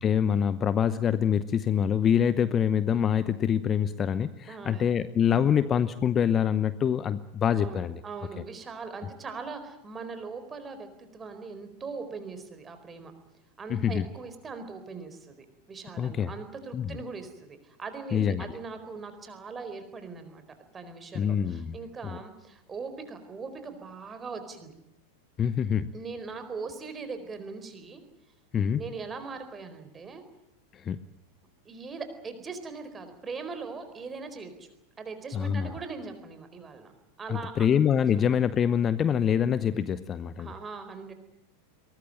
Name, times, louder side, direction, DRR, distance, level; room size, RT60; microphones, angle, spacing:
voice 1, 0.0-8.0 13.7-14.1 16.0-16.3 16.7-17.0 18.1-18.5 21.1-21.8 22.0-22.2 25.4-25.9 28.5-28.8 30.7-31.0 35.3-35.7 37.3-40.5, left 8 dB, 25° left, 16 dB, 0.9 m, -25 dB
voice 2, 4.5-4.8 5.3-5.7 7.6-13.1 13.6-20.4 20.7-24.7 25.9-28.0 28.7-30.2 31.6-34.7 35.0-36.9 37.2-37.5 38.1-38.2 40.4-41.1, right 4 dB, 20° right, 9 dB, 4.5 m, -40 dB
23.0 x 19.5 x 9.1 m, 0.85 s
figure-of-eight pair, 90°, 0 cm